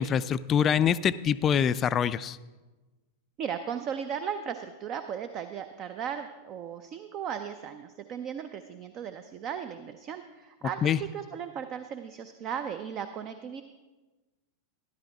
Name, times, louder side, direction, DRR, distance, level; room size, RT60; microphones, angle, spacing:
voice 1, 0.0-2.4 10.8-11.0, left 8 dB, 25° left, 16 dB, 0.3 m, -25 dB
voice 2, 3.4-13.6, right 8 dB, 35° right, 9 dB, 0.5 m, -36 dB
13.5 x 12.0 x 3.4 m, 1.2 s
figure-of-eight pair, 90°, 0 cm